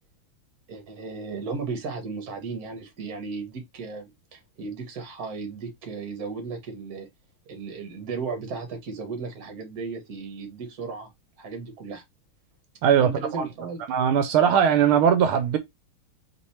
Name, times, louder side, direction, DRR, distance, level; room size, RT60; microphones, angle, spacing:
voice 1, 0.7-7.1 7.5-11.1 11.4-12.0 13.0-13.8, right 4 dB, 50° right, 1.5 m, -35 dB
voice 2, 13.9-15.6, right 8 dB, 80° right, 1.5 m, -19 dB
3.6 x 3.1 x 4.2 m
omnidirectional pair, 2.4 m